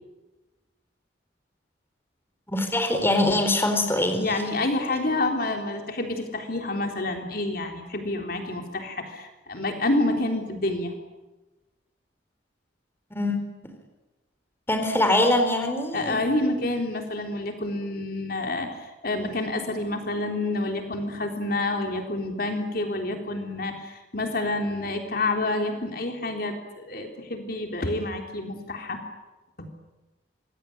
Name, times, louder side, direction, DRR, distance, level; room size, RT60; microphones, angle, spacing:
voice 1, 2.5-4.3 13.1-13.4 14.7-16.2, left 1 dB, 15° left, 5 dB, 4.4 m, -23 dB
voice 2, 4.2-10.9 15.9-29.0, left 2 dB, 55° left, 4 dB, 3.6 m, -28 dB
26.0 x 21.0 x 9.9 m, 1.1 s
head